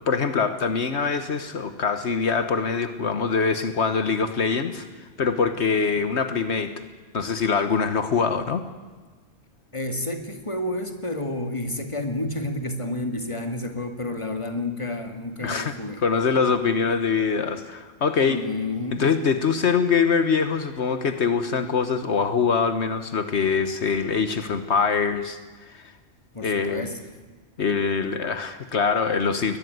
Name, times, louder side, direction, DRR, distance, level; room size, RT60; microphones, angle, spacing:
voice 1, 0.1-6.7 7.1-8.6 15.4-15.7 16.0-18.4 19.0-25.4 25.7-25.9 26.4-26.9 27.6-29.6, left 5 dB, 70° left, 9 dB, 1.4 m, -23 dB
voice 2, 9.7-16.1 18.2-19.0 26.3-27.0, left 2 dB, 25° left, 5 dB, 2.3 m, -30 dB
22.0 x 19.0 x 9.4 m, 1.4 s
omnidirectional pair, 1.2 m